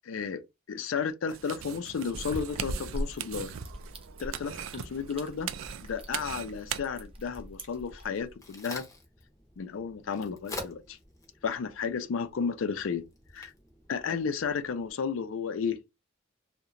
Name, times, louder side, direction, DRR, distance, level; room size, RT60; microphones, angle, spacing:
voice 1, 0.1-0.4 0.7-3.5 4.2-5.5 5.8-8.9 9.6-11.0 11.4-13.0 13.3-13.5 13.9-15.8, left 6 dB, 85° left, 0.4 m, -33 dB
sound 1, 1.3-6.8, right 9 dB, 80° right, 0.3 m, -39 dB
sound 2, 2.1-8.3, equal, 30° right, 0.6 m, -42 dB
Crack, 8.0-14.9, left 2 dB, 15° left, 0.6 m, -47 dB
2.8 x 2.1 x 2.5 m
head